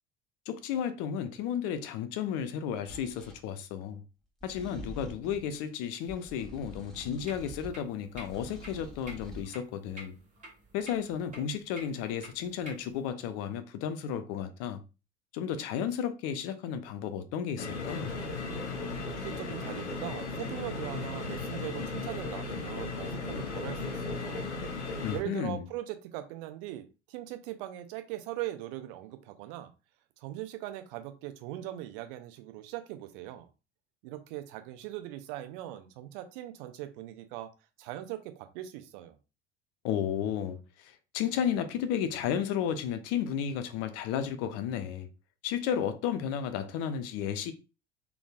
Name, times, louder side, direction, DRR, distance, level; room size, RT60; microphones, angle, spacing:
voice 1, 0.5-4.0 4.4-10.2 10.7-14.8 15.3-18.1 25.0-25.7 39.8-45.1 45.4-47.5, left 8 dB, 50° left, 0.6 m, -33 dB
sound 1, 2.9-3.4 4.4-5.5 6.1-7.8 8.1-9.5, right 1 dB, ahead, 1.5 m, -46 dB
sound 2, 7.2-13.1, right 1 dB, 20° right, 1.8 m, -51 dB
sound 3, 17.6-25.2, left 3 dB, 85° left, 0.7 m, -36 dB
voice 2, 19.0-24.5 25.1-29.7 30.2-33.5 34.0-37.5 37.8-39.2, right 14 dB, 55° right, 0.7 m, -40 dB
3.9 x 3.5 x 2.4 m
figure-of-eight pair, 65°, 33 cm